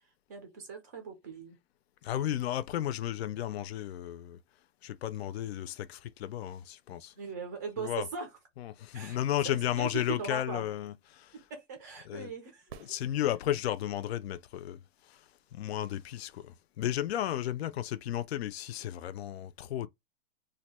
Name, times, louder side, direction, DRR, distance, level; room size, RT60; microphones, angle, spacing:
voice 1, 0.3-1.6 7.2-8.3 8.9-9.2 9.4-10.7 11.3-12.7, right 5 dB, 20° right, 0.4 m, -40 dB
voice 2, 2.0-4.4 4.8-7.1 7.8-8.1 8.6-11.5 12.0-12.3 12.7-19.9, left 12 dB, 70° left, 0.5 m, -34 dB
sound 1, 12.7-13.8 17.7-17.8, right 8 dB, 70° right, 0.6 m, -51 dB
2.6 x 2.2 x 4.1 m
supercardioid pair, 180°, 32 cm